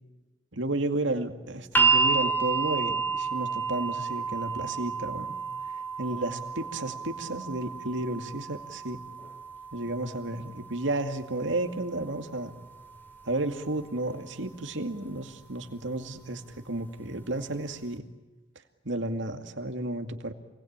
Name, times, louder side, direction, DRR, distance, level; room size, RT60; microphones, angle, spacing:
voice 1, 0.5-5.3 6.0-9.0 9.7-12.5 13.3-18.0 18.8-20.3, right 2 dB, 85° right, 6 dB, 2.3 m, -32 dB
sound 1, 1.7-13.8 14.9-15.0, right 4 dB, 10° left, 2.9 m, -31 dB
28.0 x 20.5 x 8.9 m, 1.1 s
head